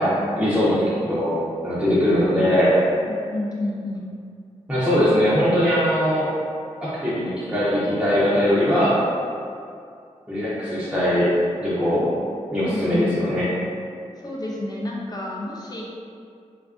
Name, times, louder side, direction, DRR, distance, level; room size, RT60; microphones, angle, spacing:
voice 1, 0.0-1.4 1.6-2.7 4.7-6.3 6.8-9.0 10.3-11.3 11.6-12.1 12.5-13.5, equal, 5° right, -11 dB, 0.7 m, -20 dB
voice 2, 3.1-4.1 12.6-13.3 14.2-15.8, left 1 dB, 30° left, -3 dB, 0.6 m, -30 dB
2.5 x 2.3 x 2.4 m, 2.4 s
cardioid pair, 45°, 13 cm